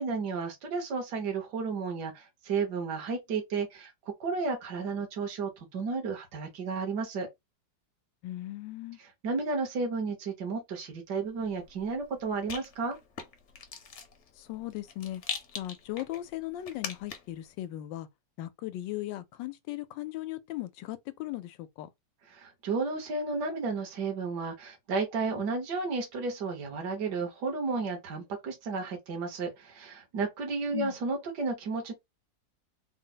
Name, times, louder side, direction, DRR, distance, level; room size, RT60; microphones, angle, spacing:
voice 1, 0.0-3.9 4.2-7.3 9.2-13.0 22.3-31.9, right 4 dB, 65° right, 1.7 m, -32 dB
voice 2, 8.2-9.0 14.4-15.2 15.6-18.1 18.4-21.9 30.7-30.9, left 15 dB, 85° left, 1.3 m, -38 dB
Rattle, 11.3-17.4, left 6 dB, 55° left, 0.9 m, -43 dB
4.0 x 2.0 x 3.8 m
omnidirectional pair, 2.0 m